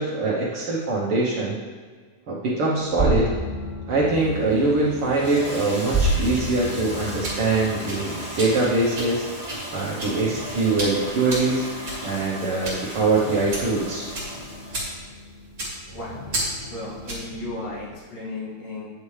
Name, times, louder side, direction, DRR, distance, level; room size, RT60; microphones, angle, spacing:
voice 1, 0.0-1.6 2.3-3.3 3.9-9.3 9.7-11.7 12.0-14.0, right 3 dB, 70° right, -5 dB, 1.3 m, -23 dB
sound 1, 2.8-17.9, right 1 dB, 10° right, 1.1 m, -33 dB
Toilet flush, 4.0-15.0, right 1 dB, 5° left, 0.8 m, -36 dB
sound 2, 7.2-17.4, right 1 dB, 25° right, 2.7 m, -34 dB
voice 2, 15.9-16.3 16.7-18.9, left 2 dB, 80° left, -6 dB, 3.9 m, -35 dB
9.6 x 7.1 x 3.2 m, 1.6 s
omnidirectional pair, 4.0 m